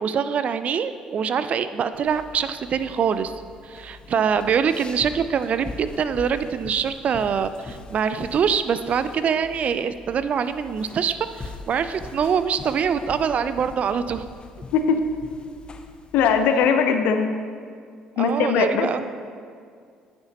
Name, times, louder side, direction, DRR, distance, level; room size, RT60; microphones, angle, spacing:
voice 1, 0.0-3.3 3.6-14.2 18.2-19.1, right 7 dB, 50° right, 12 dB, 0.4 m, -24 dB
sound 1, 1.9-16.7, left 3 dB, 30° left, 0.6 m, -42 dB
voice 2, 16.1-17.5 18.2-19.1, left 6 dB, 70° left, 7 dB, 0.6 m, -20 dB
9.7 x 6.7 x 2.9 m, 2.2 s
hypercardioid pair, 55°, 3 cm